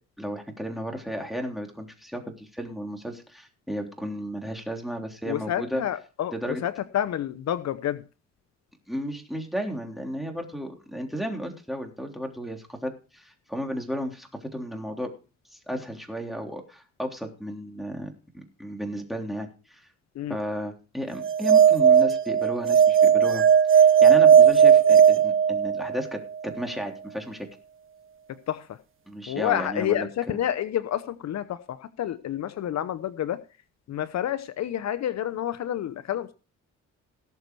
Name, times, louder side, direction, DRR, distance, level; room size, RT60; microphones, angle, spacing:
voice 1, 0.2-5.8 6.3-6.6 8.9-15.1 15.7-19.9 20.3-23.4 23.7-27.5 29.1-30.4, equal, ahead, 2 dB, 3.5 m, -34 dB
voice 2, 5.2-6.3 6.6-8.0 20.2-20.4 28.5-28.6 29.3-33.4 33.9-36.3, left 11 dB, 60° left, 13 dB, 0.8 m, -29 dB
sound 1, 21.2-26.0, right 8 dB, 45° right, 0.9 m, -17 dB
18.0 x 6.8 x 4.7 m, 0.34 s
cardioid pair, 90°, 30 cm